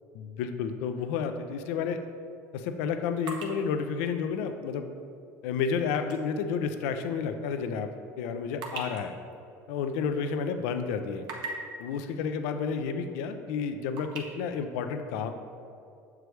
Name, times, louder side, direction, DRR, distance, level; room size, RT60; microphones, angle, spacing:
voice 1, 0.1-2.0 2.5-4.9 5.4-7.9 8.2-9.1 9.7-11.2 11.8-15.3, left 6 dB, 75° left, 8 dB, 0.4 m, -31 dB
sound 1, 1.1-1.3 1.8-6.3 6.6-6.8 7.3-10.5 10.8-11.8 12.8-12.9 13.3-14.2, right 3 dB, 60° right, 1.0 m, -43 dB
6.6 x 4.7 x 3.2 m, 2.5 s
hypercardioid pair, 75°, 8 cm